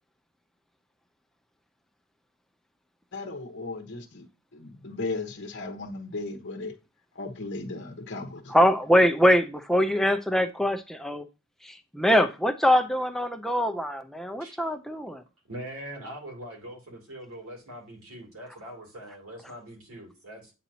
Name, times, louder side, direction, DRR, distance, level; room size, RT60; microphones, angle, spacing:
voice 1, 3.1-4.2 4.5-6.7 7.1-8.5, left 3 dB, 55° left, 1.1 m, -36 dB
voice 2, 8.5-11.3 11.6-15.2, equal, ahead, 0.5 m, -23 dB
voice 3, 15.5-20.5, right 1 dB, 85° right, 2.8 m, -42 dB
9.0 x 4.0 x 2.8 m
head